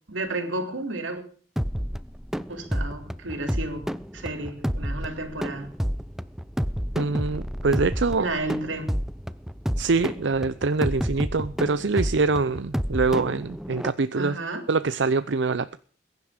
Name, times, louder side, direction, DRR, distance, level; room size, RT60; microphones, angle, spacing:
voice 1, 0.1-1.2 2.5-5.7 8.2-9.0 14.1-14.7, right 2 dB, 90° right, 3.3 m, -32 dB
sound 1, 1.6-13.9, equal, ahead, 0.6 m, -30 dB
voice 2, 7.0-8.3 9.8-14.4 14.7-15.8, right 4 dB, 65° right, 0.7 m, -24 dB
21.5 x 11.0 x 5.1 m
head